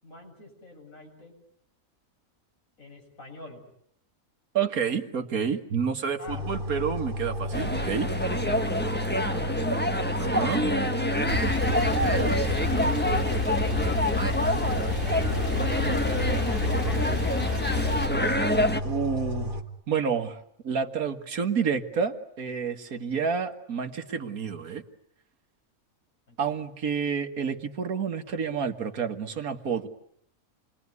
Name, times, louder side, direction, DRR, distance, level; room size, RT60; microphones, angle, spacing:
voice 1, 0.0-1.4 2.8-3.6 6.2-6.4 9.2-9.4 11.8-13.6 14.0-15.4 26.3-26.5, left 1 dB, 65° left, 1 dB, 8.0 m, -46 dB
voice 2, 4.5-8.1 10.2-10.6 12.0-12.4 18.8-19.5 19.9-20.4 20.6-24.8 26.4-29.9, right 6 dB, 80° right, 7 dB, 2.0 m, -29 dB
sound 1, 6.3-19.6, equal, 35° right, 2.3 m, -32 dB
sound 2, 7.5-18.8, equal, 5° left, 1.3 m, -27 dB
Male speech man speaking / Car / Idling, 11.3-18.1, left 3 dB, 35° left, 3.7 m, -29 dB
28.5 x 21.5 x 9.5 m, 0.71 s
omnidirectional pair, 1.5 m